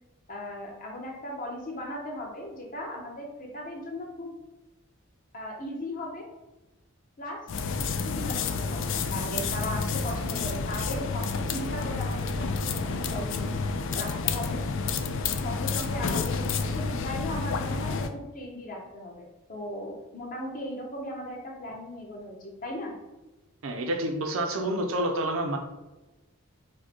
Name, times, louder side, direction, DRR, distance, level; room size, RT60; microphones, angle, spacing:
voice 1, 0.3-4.3 5.3-6.2 7.2-7.4 8.0-13.6 13.9-14.6 15.4-22.9, left 1 dB, 40° left, -1 dB, 1.1 m, -37 dB
sound 1, 7.5-18.1, left 4 dB, 60° left, 0.4 m, -30 dB
voice 2, 23.6-25.6, right 1 dB, 65° right, 2 dB, 0.6 m, -28 dB
4.8 x 2.3 x 4.4 m, 1.1 s
head